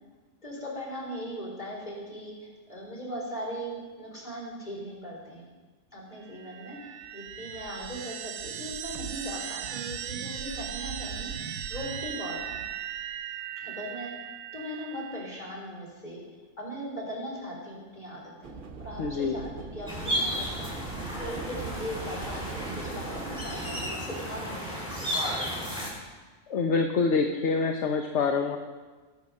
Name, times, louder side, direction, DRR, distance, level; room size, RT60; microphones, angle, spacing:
voice 1, 0.4-5.5 5.9-11.3 11.7-12.6 13.6-14.1 14.5-16.2 16.6-20.8 21.2-25.3, equal, 30° left, -3 dB, 4.2 m, -39 dB
sound 1, 6.3-15.5, right 9 dB, 85° right, 1.1 m, -38 dB
sound 2, 18.4-23.9, right 4 dB, 45° right, 0.9 m, -40 dB
voice 2, 19.0-19.4 26.5-28.6, left 4 dB, 60° left, 4 dB, 1.1 m, -26 dB
sound 3, 19.9-25.9, equal, 5° right, 5.2 m, -33 dB
20.5 x 7.0 x 6.4 m, 1.3 s
omnidirectional pair, 1.4 m